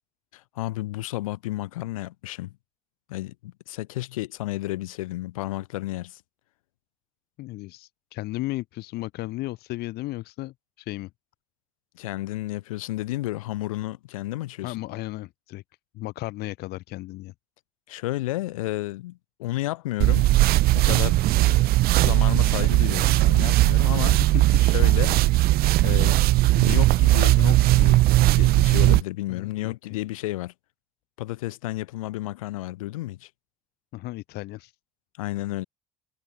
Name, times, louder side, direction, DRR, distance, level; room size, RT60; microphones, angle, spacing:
voice 1, 0.3-2.5 3.1-6.2 11.9-15.0 17.9-20.3 20.7-24.2 24.6-25.2 25.8-26.2 26.5-28.0 28.3-30.5 31.2-33.3 35.2-35.6, left 17 dB, 90° left, 3.2 m, -32 dB
voice 2, 7.4-11.1 14.6-15.6 15.9-17.3 24.1-24.4 29.3-29.7 33.9-34.7, left 18 dB, 70° left, 2.0 m, -34 dB
sound 1, 20.0-29.0, right 17 dB, 65° right, 0.6 m, -19 dB
hypercardioid pair, 60°, 17 cm